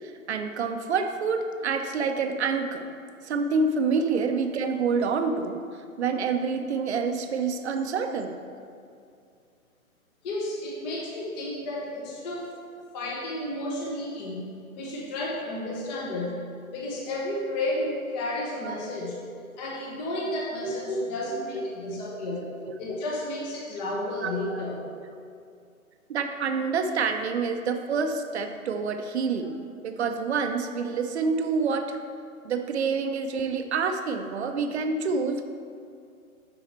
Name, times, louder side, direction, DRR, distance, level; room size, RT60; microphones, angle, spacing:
voice 1, 0.0-2.9 3.2-5.6 6.0-8.4 18.6-18.7 20.6-20.7 21.2-21.4 24.2-24.3 26.1-29.6 29.8-32.0 32.4-35.4, right 5 dB, 50° right, 6 dB, 0.7 m, -27 dB
voice 2, 10.2-12.5 12.9-19.2 19.6-22.5 22.8-24.8, left 1 dB, 30° left, -3 dB, 1.1 m, -32 dB
8.1 x 5.7 x 4.3 m, 2.4 s
figure-of-eight pair, 130°, 43 cm